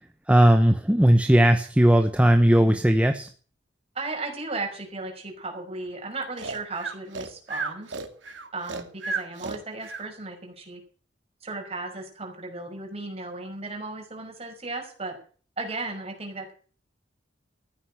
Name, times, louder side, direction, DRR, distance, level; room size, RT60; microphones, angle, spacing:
voice 1, 0.3-3.3, right 1 dB, 5° right, 6 dB, 0.9 m, -18 dB
voice 2, 3.9-7.9 8.5-10.8 11.4-15.2 15.6-16.5, right 3 dB, 35° right, 2 dB, 5.5 m, -35 dB
Breathing, 6.4-10.1, right 4 dB, 80° right, 2.2 m, -33 dB
14.5 x 9.8 x 7.6 m, 0.42 s
head